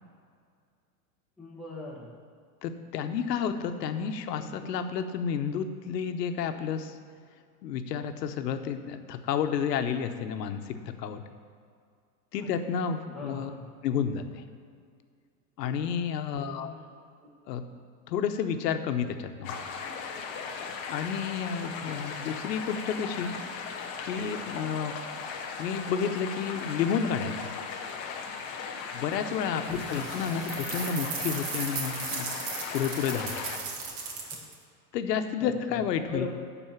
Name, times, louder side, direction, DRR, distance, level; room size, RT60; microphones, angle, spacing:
voice 1, 1.4-2.1 4.3-4.7 12.4-12.5 13.1-13.7 16.3-16.7 29.7-30.1 35.4-35.8 36.1-36.3, left 2 dB, ahead, -6 dB, 1.1 m, -41 dB
voice 2, 2.6-6.9 7.6-11.2 12.3-13.5 13.8-14.4 15.6-16.7 17.5-17.6 18.1-19.6 20.9-23.3 24.1-24.9 25.6-27.5 28.9-32.3 32.7-33.5 34.9-36.3, left 7 dB, 80° left, 8 dB, 1.0 m, -31 dB
sound 1, 19.4-33.6, left 5 dB, 20° left, 0.3 m, -38 dB
sound 2, 29.7-34.5, right 4 dB, 55° right, 2.1 m, -36 dB
11.5 x 4.4 x 7.2 m, 2.2 s
supercardioid pair, 145°, 49 cm